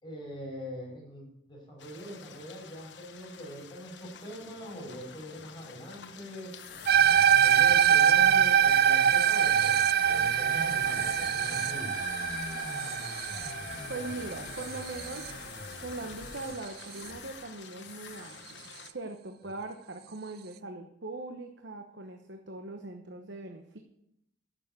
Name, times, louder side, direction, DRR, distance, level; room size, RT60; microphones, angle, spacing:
voice 1, 0.0-6.5 7.4-11.9, equal, 25° left, -4 dB, 6.4 m, -42 dB
sound 1, 1.8-18.9, left 6 dB, 75° left, 1.1 m, -50 dB
sound 2, 6.5-17.5 17.8-18.3, left 4 dB, 60° left, 1.9 m, -41 dB
sound 3, 6.9-15.3, right 9 dB, 55° right, 0.4 m, -24 dB
voice 2, 13.9-15.4 15.8-23.8, right 3 dB, 75° right, 5 dB, 1.1 m, -41 dB
11.5 x 7.3 x 8.2 m, 0.79 s
head